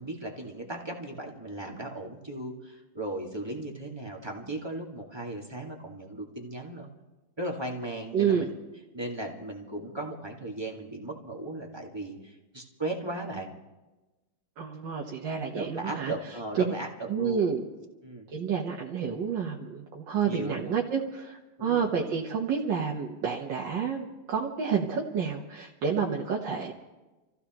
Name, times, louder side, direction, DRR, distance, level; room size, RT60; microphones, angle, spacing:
voice 1, 0.0-6.9 7.4-8.4 8.9-13.5 15.5-16.9 17.2-17.4 18.0-18.3 20.2-20.7 21.6-21.9, right 2 dB, 15° right, -1 dB, 1.7 m, -37 dB
voice 2, 8.1-8.5 14.6-16.1 16.6-16.7 17.1-17.7 18.3-26.7, right 6 dB, 85° right, -1 dB, 1.8 m, -29 dB
28.5 x 15.0 x 3.0 m, 1.1 s
omnidirectional pair, 1.9 m